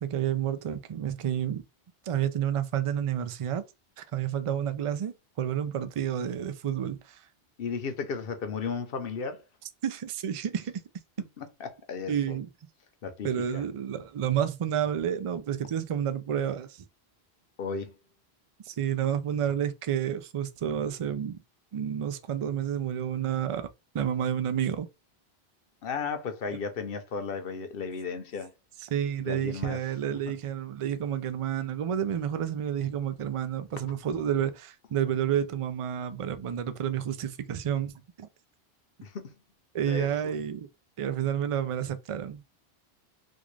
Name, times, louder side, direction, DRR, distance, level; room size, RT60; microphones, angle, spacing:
voice 1, 0.0-1.6 2.1-3.6 4.0-7.3 9.8-10.8 12.1-12.5 13.2-16.8 18.6-21.4 21.7-23.7 23.9-24.9 28.8-38.3 39.7-40.7 41.0-42.4, right 9 dB, 55° right, 0.3 m, -30 dB
voice 2, 7.6-9.4 11.4-12.4 13.0-13.6 17.6-17.9 25.8-28.5 29.2-29.8 30.3-30.4 39.0-39.3 39.9-40.3, left 5 dB, 65° left, 0.9 m, -34 dB
3.6 x 2.4 x 3.1 m
omnidirectional pair, 1.1 m